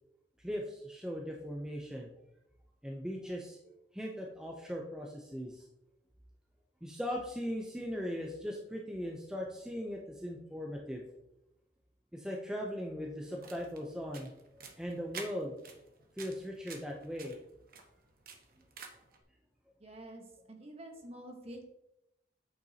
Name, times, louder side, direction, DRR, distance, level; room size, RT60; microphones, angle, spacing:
voice 1, 0.4-2.1 2.8-5.7 6.8-11.0 12.1-15.5 16.1-17.5, equal, 5° right, -1 dB, 0.6 m, -39 dB
sound 1, 13.2-19.2, right 5 dB, 50° right, 1.2 m, -51 dB
voice 2, 19.8-21.6, right 1 dB, 35° right, 2 dB, 1.3 m, -48 dB
8.5 x 6.7 x 2.8 m, 0.87 s
head